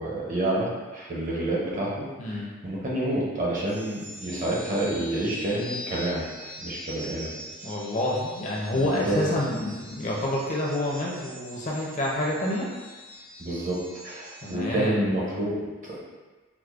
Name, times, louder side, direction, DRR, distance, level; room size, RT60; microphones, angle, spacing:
voice 1, 0.0-2.4 2.6-6.3 6.6-7.4 8.7-9.2 13.4-16.0, right 1 dB, 40° right, -5 dB, 0.7 m, -29 dB
sound 1, 3.7-14.5, equal, 80° right, 1.5 m, -43 dB
voice 2, 7.6-12.7 14.4-15.1, left 1 dB, 35° left, -3 dB, 0.5 m, -28 dB
4.7 x 2.0 x 2.3 m, 1.3 s
head